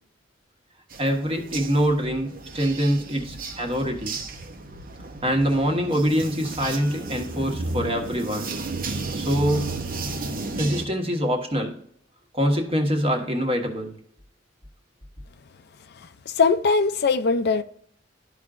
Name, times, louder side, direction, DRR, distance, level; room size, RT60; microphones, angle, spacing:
sound 1, 0.9-10.9, right 3 dB, 50° right, 0.9 m, -33 dB
voice 1, 1.0-4.2 5.2-8.5 9.2-9.8 10.6-11.8 12.3-14.0, equal, 30° right, 1.4 m, -24 dB
voice 2, 16.3-17.6, left 4 dB, 60° left, 0.5 m, -20 dB
12.5 x 4.9 x 2.5 m
head